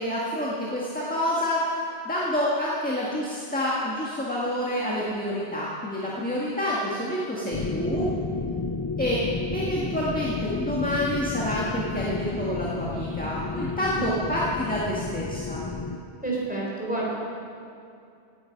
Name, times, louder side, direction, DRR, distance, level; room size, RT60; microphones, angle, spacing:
voice 1, 0.0-1.7 2.0-8.1 9.0-9.2 9.5-15.6, equal, 10° left, -6 dB, 1.7 m, -28 dB
sound 1, 7.5-16.0, left 4 dB, 35° left, 0.3 m, -31 dB
voice 2, 16.2-17.1, right 2 dB, 10° right, -5 dB, 4.0 m, -29 dB
18.0 x 9.9 x 5.2 m, 2.5 s
omnidirectional pair, 1.1 m